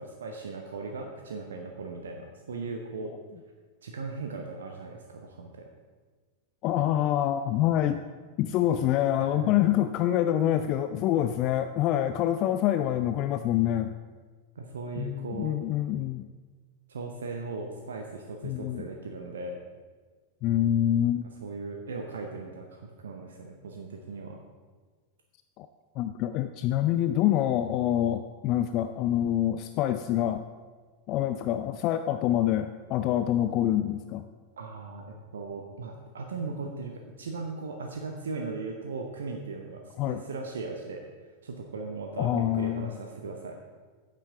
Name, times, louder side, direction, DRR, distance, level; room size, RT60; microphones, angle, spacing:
voice 1, 0.0-3.1 3.8-5.6 9.2-9.5 14.5-15.5 16.9-19.6 21.4-24.4 34.6-41.0 41.4-43.6, right 4 dB, 65° right, 2 dB, 0.8 m, -38 dB
voice 2, 6.6-8.0 8.4-13.9 15.0-16.3 18.4-18.8 20.4-21.3 25.6-25.7 26.0-30.5 31.1-34.2 40.0-40.2 42.2-42.9, left 12 dB, 40° left, 10 dB, 0.3 m, -26 dB
8.7 x 7.7 x 4.8 m, 1.5 s
figure-of-eight pair, 90°, 0 cm